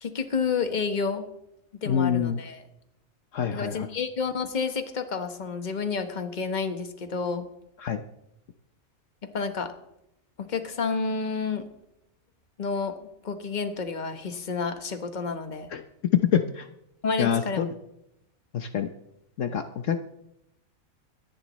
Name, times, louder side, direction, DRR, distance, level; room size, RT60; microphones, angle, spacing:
voice 1, 0.0-1.3 1.8-2.6 3.5-7.5 9.3-9.7 10.4-11.6 12.6-15.7 17.0-17.7, left 5 dB, 35° left, 7 dB, 1.3 m, -30 dB
voice 2, 1.9-2.4 3.3-3.9 7.8-8.0 15.7-15.8 16.3-16.6 17.2-17.7 18.5-18.9 19.4-20.0, left 8 dB, 70° left, 8 dB, 1.1 m, -26 dB
23.5 x 11.0 x 3.1 m, 0.81 s
omnidirectional pair, 1.4 m